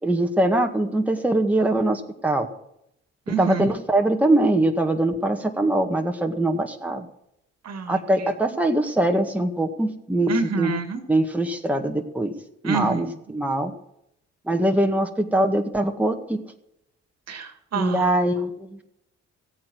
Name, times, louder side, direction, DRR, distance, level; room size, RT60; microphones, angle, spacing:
voice 1, 0.0-2.5 3.3-7.1 7.9-10.7 11.1-12.3 12.6-13.7 14.5-16.4 17.7-18.8, right 1 dB, 5° right, 3 dB, 1.8 m, -22 dB
voice 2, 3.3-3.7 7.6-8.3 10.3-11.0 12.6-13.1 17.3-18.1, right 5 dB, 55° right, 7 dB, 2.2 m, -28 dB
15.0 x 8.7 x 6.3 m, 0.78 s
supercardioid pair, 55°, 30 cm